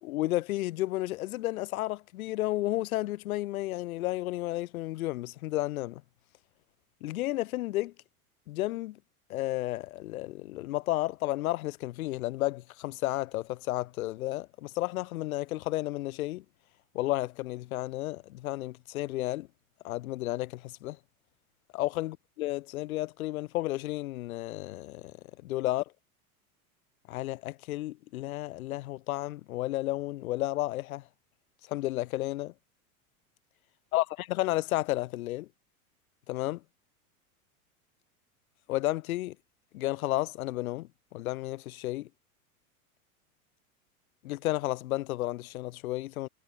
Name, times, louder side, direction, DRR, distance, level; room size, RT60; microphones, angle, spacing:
voice 1, 0.0-6.0 7.0-7.9 8.5-9.0 9.3-16.4 16.9-19.5 19.8-21.0 21.7-25.1 25.4-25.8 27.1-31.0 31.7-32.5 33.9-35.5 36.3-36.6 38.7-39.3 39.7-42.1 44.2-46.3, left 17 dB, 70° left, 3.3 m, -32 dB
hypercardioid pair, 95°, 44 cm